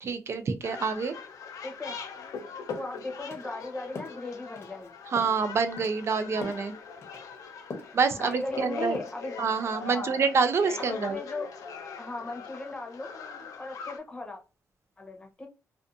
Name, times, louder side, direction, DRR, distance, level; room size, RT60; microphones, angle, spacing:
voice 1, 0.0-1.1 5.1-6.7 7.9-9.0 9.4-11.2, right 5 dB, 45° right, 0.4 m, -27 dB
Children Laughing, 0.6-14.0, left 5 dB, 80° left, 0.6 m, -41 dB
voice 2, 1.6-2.0 2.8-4.9 8.2-9.3 9.8-10.1 10.8-11.5 12.0-13.2 13.6-14.4 15.0-15.5, left 2 dB, 15° left, 0.8 m, -37 dB
sound 1, 2.2-2.4 2.7-2.9 3.3-3.5 4.0-4.2 4.6-4.9 5.2-5.4 5.8-6.0 6.4-6.7 7.0-7.3 7.7-8.0 8.3-8.7 8.9-9.2, left 3 dB, 45° left, 0.8 m, -41 dB
2.5 x 2.4 x 2.5 m
cardioid pair, 105°, 6 cm